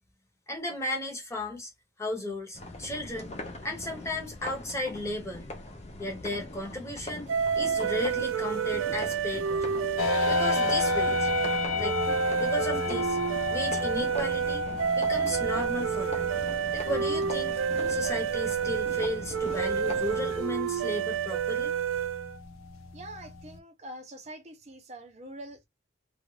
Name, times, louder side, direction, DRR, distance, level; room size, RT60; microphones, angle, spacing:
voice 1, 0.5-1.7 2.0-3.3 3.6-5.5 6.0-7.3 7.5-9.6 10.3-11.3 11.8-12.0 12.4-13.2 13.5-14.7 15.0-16.3 16.7-21.8, left 1 dB, 15° left, 0.9 m, -34 dB
sound 1, 2.5-20.4, left 1 dB, 30° left, 0.5 m, -42 dB
sound 2, 7.3-22.4, right 7 dB, 70° right, 0.4 m, -29 dB
sound 3, 10.0-23.6, left 5 dB, 85° left, 0.5 m, -33 dB
voice 2, 22.9-25.7, right 1 dB, 30° right, 0.6 m, -44 dB
2.5 x 2.3 x 3.1 m
head